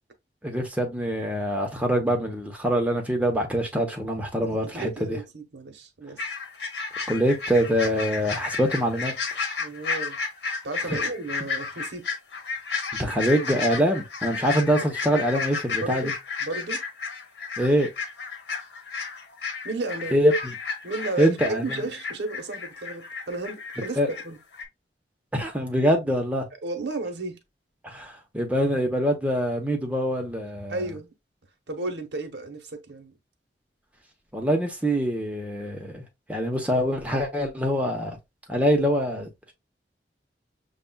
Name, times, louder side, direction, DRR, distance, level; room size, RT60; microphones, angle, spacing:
voice 1, 0.4-4.9 7.1-9.1 10.9-11.0 13.0-16.1 17.6-17.9 20.1-20.3 21.2-21.8 24.0-24.1 25.3-26.5 27.8-30.8 34.3-36.0 36.3-38.2 38.5-39.5, equal, 10° right, 0.8 m, -24 dB
voice 2, 4.4-6.2 9.6-10.2 10.6-12.1 15.8-16.1 16.4-16.8 19.6-20.2 20.8-24.0 24.2-24.4 26.6-27.4 30.7-31.1 31.7-33.1, right 3 dB, 80° right, 1.0 m, -33 dB
sound 1, 6.2-24.2 24.5-24.6, left 5 dB, 70° left, 1.3 m, -32 dB
6.7 x 2.4 x 2.2 m
head